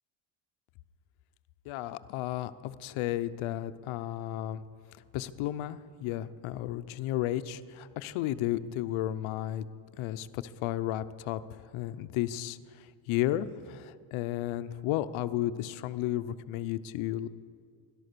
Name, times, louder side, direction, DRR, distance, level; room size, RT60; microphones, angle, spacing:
voice 1, 1.7-4.6 5.1-9.6 9.9-17.3, left 13 dB, 90° left, 13 dB, 0.8 m, -33 dB
17.0 x 12.0 x 6.8 m, 2.2 s
cardioid pair, 110°, 47 cm